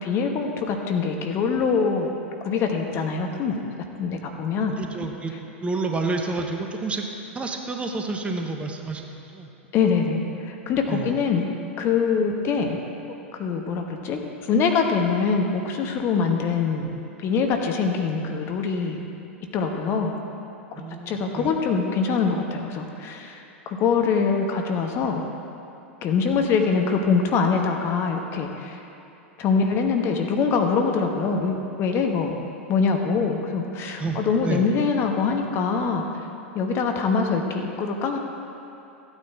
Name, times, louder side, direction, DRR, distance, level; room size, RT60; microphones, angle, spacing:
voice 1, 0.0-2.1 2.4-3.6 4.0-4.8 9.7-11.4 11.8-12.8 13.3-16.9 17.2-19.0 19.5-20.1 20.7-25.2 26.0-28.8 29.4-32.4 32.7-36.0 36.5-38.2, left 5 dB, 40° left, 3 dB, 1.1 m, -24 dB
voice 2, 4.8-5.3 5.6-7.1 7.3-9.5 10.9-11.1 20.7-21.5 34.0-34.6, right 3 dB, 15° right, 3 dB, 1.0 m, -29 dB
15.0 x 9.0 x 3.6 m, 2.8 s
hypercardioid pair, 95°, 7 cm